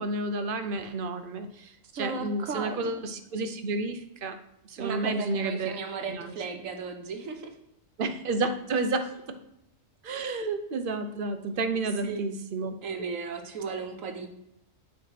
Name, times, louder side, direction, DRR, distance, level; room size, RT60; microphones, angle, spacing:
voice 1, 0.0-4.4 4.7-5.7 6.1-6.3 8.0-9.4 10.0-12.8, right 3 dB, 50° right, 8 dB, 0.8 m, -31 dB
voice 2, 1.9-2.9 4.8-7.5 10.1-10.2 12.0-12.2 12.8-14.3, right 4 dB, 85° right, 5 dB, 1.4 m, -35 dB
9.1 x 3.5 x 5.7 m, 0.81 s
omnidirectional pair, 1.3 m